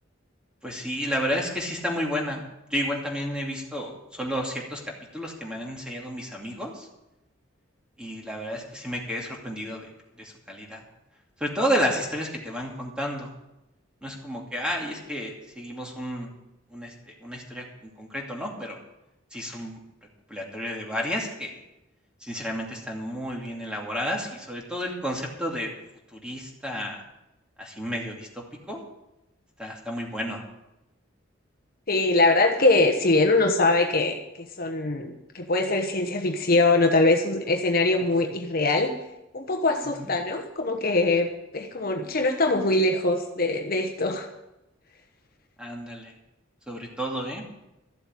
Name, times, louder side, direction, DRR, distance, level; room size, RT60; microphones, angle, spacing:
voice 1, 0.6-4.8 5.1-6.9 8.0-9.9 10.1-10.8 11.4-13.4 14.0-16.3 16.7-18.8 19.3-19.8 20.3-21.6 22.2-25.7 26.1-27.0 27.6-28.8 29.6-30.4 40.0-40.1 45.6-46.1 46.7-47.4, equal, 5° right, -1 dB, 2.6 m, -31 dB
voice 2, 31.9-38.9 39.3-44.3, left 2 dB, 50° left, 4 dB, 1.1 m, -23 dB
13.0 x 7.8 x 8.5 m, 0.91 s
head